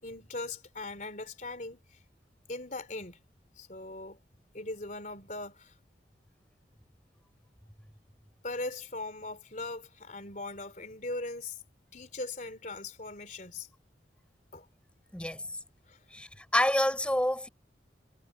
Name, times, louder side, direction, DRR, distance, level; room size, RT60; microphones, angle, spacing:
voice 1, 0.0-1.8 2.5-3.2 3.6-4.2 4.5-5.7 8.4-11.6 11.9-13.7 14.5-14.7 15.9-16.0, left 2 dB, 45° left, 3.8 m, -39 dB
voice 2, 15.1-15.6 16.1-17.5, left 1 dB, 5° left, 4.6 m, -28 dB
head